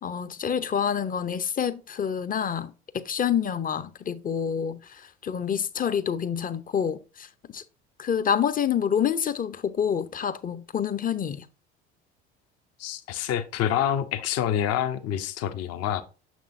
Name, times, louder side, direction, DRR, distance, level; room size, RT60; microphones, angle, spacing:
voice 1, 0.0-7.3 7.5-7.6 8.0-11.4, left 8 dB, 25° left, 0.7 m, -27 dB
voice 2, 12.8-16.0, left 10 dB, 50° left, 0.9 m, -27 dB
6.8 x 6.1 x 2.6 m
hypercardioid pair, 65°, 33 cm